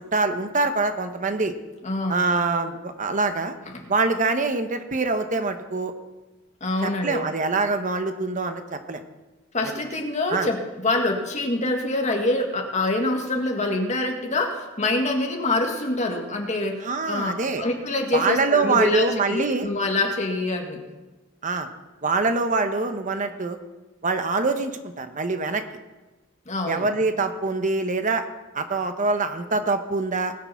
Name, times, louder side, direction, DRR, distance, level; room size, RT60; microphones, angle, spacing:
voice 1, 0.0-1.5 2.1-3.6 3.9-5.9 6.8-9.0 10.3-10.5 16.8-17.6 18.1-19.7 21.4-21.7 22.0-23.6 24.0-25.6 26.7-28.2 28.5-30.3, right 3 dB, 40° right, 8 dB, 0.8 m, -24 dB
voice 2, 1.8-2.2 6.6-7.2 9.5-20.8 26.5-26.9, left 2 dB, 35° left, 2 dB, 1.8 m, -25 dB
20.0 x 6.8 x 5.8 m, 1.1 s
head